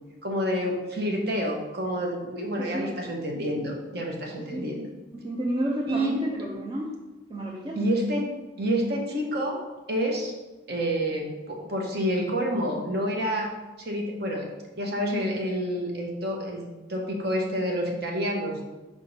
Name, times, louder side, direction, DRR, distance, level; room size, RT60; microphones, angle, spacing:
voice 1, 0.2-4.9 5.9-6.2 7.7-8.3 8.6-9.6 9.9-10.3 10.7-13.5 13.8-14.5 14.8-18.7, equal, 50° right, 0 dB, 1.1 m, -28 dB
voice 2, 2.6-3.0 4.5-4.8 5.1-6.9 7.3-7.8, right 1 dB, 25° right, -3 dB, 0.5 m, -31 dB
5.0 x 3.7 x 5.5 m, 1.1 s
head